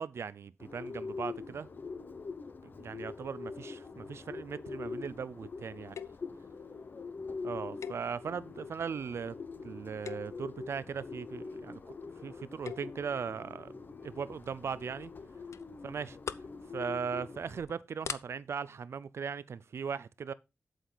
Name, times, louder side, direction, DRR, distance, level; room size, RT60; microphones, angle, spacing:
voice 1, 0.0-1.7 2.6-6.0 7.4-9.4 9.6-12.0 12.2-13.7 14.0-15.1 15.8-16.2 16.7-20.3, right 6 dB, 60° right, 0.5 m, -38 dB
Bird, 0.6-17.6, left 4 dB, 40° left, 0.8 m, -44 dB
sound 1, 5.9-6.3 7.8-8.5 9.1-9.3 9.9-10.5 12.4-13.0 14.4-14.7 15.0-15.1 15.5-15.6 16.0-16.6 17.0-17.2 17.7-17.8 18.0-18.2, left 7 dB, 80° left, 0.5 m, -41 dB
8.0 x 8.0 x 3.9 m
wide cardioid pair, 175°, 5 cm